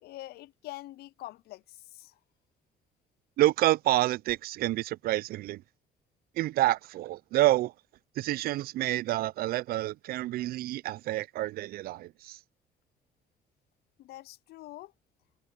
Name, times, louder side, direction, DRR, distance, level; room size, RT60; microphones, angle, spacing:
voice 1, 0.0-2.2 14.0-14.9, left 16 dB, 70° left, 0.5 m, -45 dB
voice 2, 3.4-5.6 6.4-7.7 8.2-12.4, right 16 dB, 65° right, 0.4 m, -28 dB
cardioid pair, 110°, 17 cm